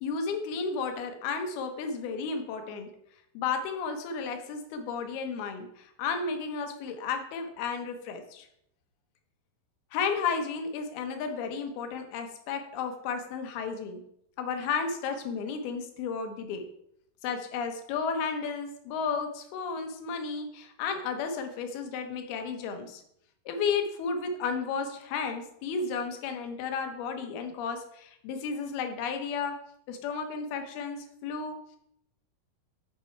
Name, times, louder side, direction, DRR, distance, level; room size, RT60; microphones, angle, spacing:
voice 1, 0.0-2.9 3.3-8.5 9.9-14.0 14.4-16.7 17.2-23.0 23.5-29.6 29.9-31.6, left 5 dB, 80° left, 5 dB, 3.0 m, -33 dB
8.9 x 6.0 x 4.6 m, 0.73 s
omnidirectional pair, 4.4 m